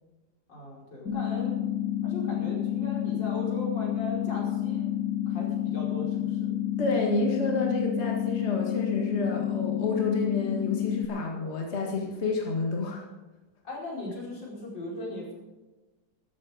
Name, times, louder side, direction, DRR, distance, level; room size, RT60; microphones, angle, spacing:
voice 1, 0.5-1.6 2.0-4.9 5.3-6.4 13.6-15.3, left 1 dB, 80° left, -4 dB, 5.8 m, -38 dB
sound 1, 1.1-11.1, left 11 dB, 60° left, 1.5 m, -29 dB
voice 2, 6.8-13.0, left 2 dB, 40° left, -1 dB, 2.2 m, -29 dB
14.5 x 12.5 x 5.2 m, 1.1 s
omnidirectional pair, 1.9 m